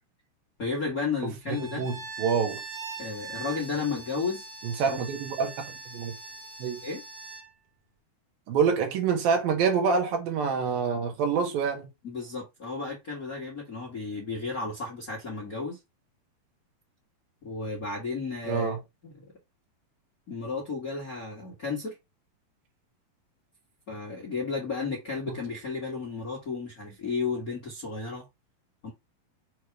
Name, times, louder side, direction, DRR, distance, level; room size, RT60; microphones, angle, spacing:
voice 1, 0.6-1.8 3.0-4.4 4.9-5.0 6.8-7.0 12.0-15.8 17.4-18.7 19.0-19.2 20.3-22.0 23.9-28.2 28.8-28.9, left 4 dB, 50° left, 1.0 m, -33 dB
Bowed string instrument, 1.4-7.5, right 4 dB, 50° right, 2.1 m, -42 dB
voice 2, 1.8-2.6 4.6-5.5 5.9-6.1 6.6-6.8 8.5-11.9 18.5-18.8, right 6 dB, 80° right, 3.1 m, -26 dB
6.5 x 3.1 x 4.7 m
omnidirectional pair, 4.2 m